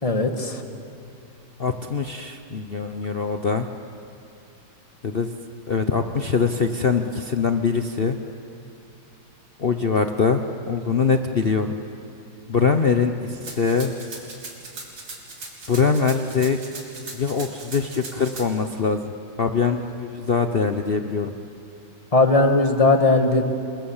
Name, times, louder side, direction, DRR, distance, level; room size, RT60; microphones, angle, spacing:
voice 1, 0.0-0.6 22.1-23.5, left 3 dB, 20° left, 6 dB, 1.4 m, -18 dB
voice 2, 1.6-3.7 5.0-5.3 5.7-8.2 9.6-11.8 12.5-13.9 15.7-16.6 17.2-19.1 19.4-21.3, left 5 dB, 70° left, 6 dB, 0.5 m, -23 dB
Rattle (instrument), 13.4-18.4, right 3 dB, 65° right, 4.1 m, -38 dB
29.0 x 22.5 x 7.3 m, 2.6 s
omnidirectional pair, 2.3 m